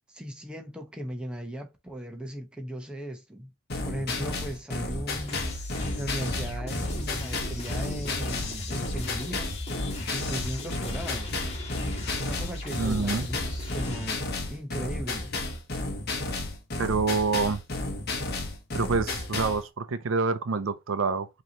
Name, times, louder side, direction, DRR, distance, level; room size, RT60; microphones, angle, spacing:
voice 1, 0.1-3.5 3.8-9.6 10.1-11.4 12.2-14.2 14.5-15.4, equal, 5° right, 0.9 m, -37 dB
sound 1, 3.7-19.6, left 2 dB, 50° left, 1.1 m, -32 dB
sound 2, 5.3-14.1, left 2 dB, 30° left, 1.7 m, -36 dB
voice 2, 12.8-13.3 16.8-17.6 18.7-21.3, right 4 dB, 70° right, 0.5 m, -27 dB
5.4 x 3.0 x 2.8 m
head